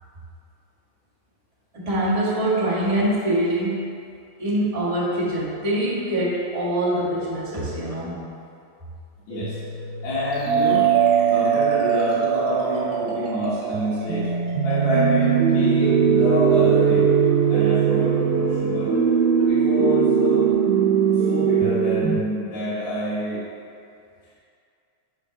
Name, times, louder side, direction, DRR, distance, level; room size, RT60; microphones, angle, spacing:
voice 1, 1.7-3.9 4.4-8.2, right 1 dB, 30° right, -10 dB, 0.6 m, -24 dB
voice 2, 9.3-9.6 10.0-10.9 11.3-14.3 14.6-17.1 17.5-18.9 19.5-20.5 21.3-23.4, left 1 dB, 65° left, -11 dB, 2.6 m, -27 dB
sound 1, 9.3-22.2, right 7 dB, 85° right, 2.1 m, -20 dB
sound 2, 10.3-15.5 15.8-15.9 16.2-16.3 16.5-16.6 16.9-17.0 17.2-17.3 17.6-17.7 18.0-18.1 18.5-18.6 18.9-19.0 19.4-19.5 19.9-20.0 20.4-20.5, left 2 dB, 50° left, 0.9 m, -42 dB
7.2 x 4.6 x 3.8 m, 2.5 s
omnidirectional pair, 3.4 m